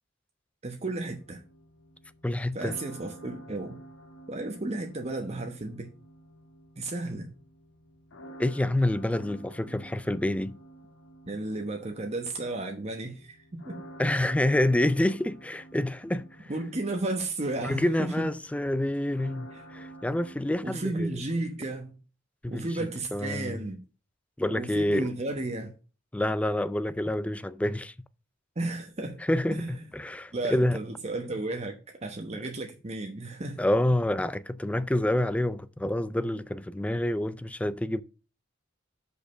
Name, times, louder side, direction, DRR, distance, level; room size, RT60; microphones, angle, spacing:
voice 1, 0.6-1.4 2.5-3.8 4.3-5.9 6.8-7.3 11.2-13.8 16.5-18.3 19.5-19.6 20.6-22.0 22.5-23.8 24.5-25.7 28.6-29.2 29.5-29.8 30.3-33.6, right 2 dB, 35° right, 1.0 m, -33 dB
sound 1, 0.8-20.4, right 1 dB, 85° left, 1.4 m, -50 dB
voice 2, 2.2-2.8 8.4-10.6 14.0-16.5 17.6-21.1 22.4-23.7 24.4-25.1 26.1-27.9 29.3-30.8 33.6-38.0, left 1 dB, 5° left, 0.4 m, -28 dB
6.5 x 5.3 x 6.2 m
head